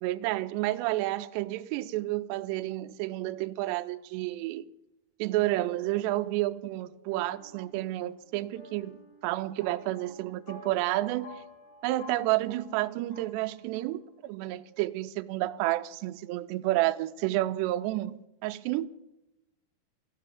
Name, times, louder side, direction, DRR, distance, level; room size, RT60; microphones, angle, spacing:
voice 1, 0.0-4.7 5.2-9.0 9.2-11.4 11.8-18.9, right 16 dB, 80° right, 2.6 m, -30 dB
sound 1, 7.1-14.1, left 1 dB, 70° left, 5.3 m, -52 dB
13.5 x 7.8 x 9.2 m
omnidirectional pair, 5.3 m